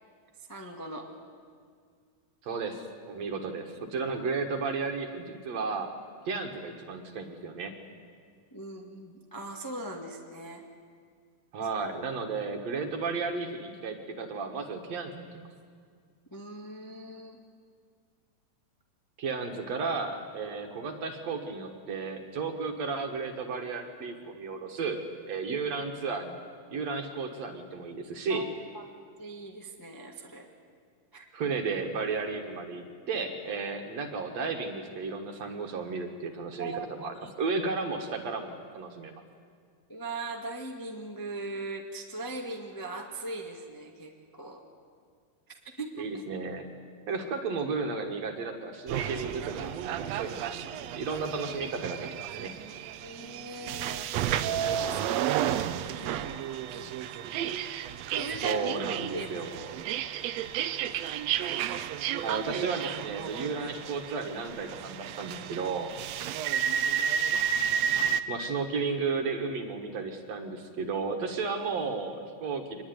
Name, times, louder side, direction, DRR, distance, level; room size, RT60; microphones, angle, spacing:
voice 1, 0.5-1.1 8.5-10.6 16.3-17.4 28.3-28.8 29.2-30.5 31.1-31.2 36.6-37.3 39.9-44.6 45.7-46.2 53.0-54.1 54.5-57.4 58.1-58.7 59.1-59.5, right 2 dB, 25° left, 1 dB, 0.4 m, -40 dB
voice 2, 2.4-5.9 6.3-7.7 11.5-15.3 19.2-26.4 26.7-28.5 31.3-39.2 46.0-46.7 47.1-52.5 58.4-59.8 62.2-65.9 68.3-72.8, right 4 dB, 55° right, 5 dB, 2.5 m, -33 dB
sound 1, 48.9-68.2, right 9 dB, 85° right, 1.5 m, -32 dB
25.0 x 21.0 x 9.7 m, 2.1 s
omnidirectional pair, 4.1 m